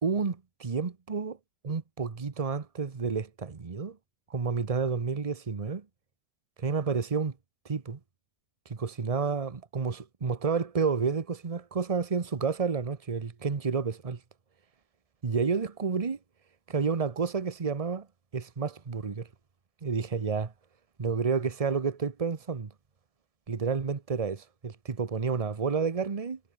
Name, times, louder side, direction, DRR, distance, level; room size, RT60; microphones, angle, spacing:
voice 1, 0.0-1.4 1.6-4.0 4.3-5.8 6.6-7.3 7.6-8.0 8.7-14.2 15.2-16.2 16.7-18.1 18.3-19.3 19.8-20.5 21.0-22.7 23.5-26.4, right 5 dB, 30° right, 0.6 m, -30 dB
omnidirectional pair, 2.2 m